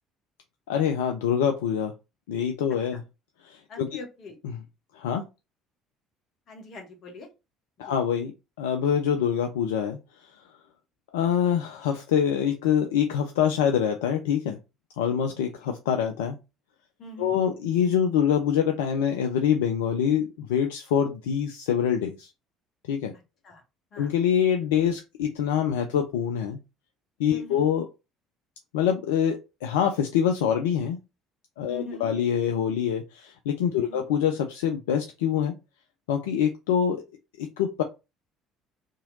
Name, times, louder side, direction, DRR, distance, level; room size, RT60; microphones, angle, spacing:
voice 1, 0.7-1.9 2.3-3.0 3.4-3.9 4.9-5.2 7.8-8.3 8.6-10.0 11.1-14.6 15.0-16.4 17.2-22.3 22.9-23.1 24.0-26.6 27.2-27.9 28.7-31.0 31.6-35.5 36.1-37.0 37.4-37.8, left 8 dB, 65° left, 4 dB, 0.3 m, -25 dB
voice 2, 3.7-4.4 6.5-7.3 7.8-8.0 17.0-17.4 23.4-23.6 23.9-24.1 27.3-27.7 31.7-32.1 33.7-34.1, left 2 dB, 45° left, 3 dB, 1.1 m, -42 dB
2.9 x 2.7 x 3.9 m, 0.27 s
figure-of-eight pair, 55°, 0 cm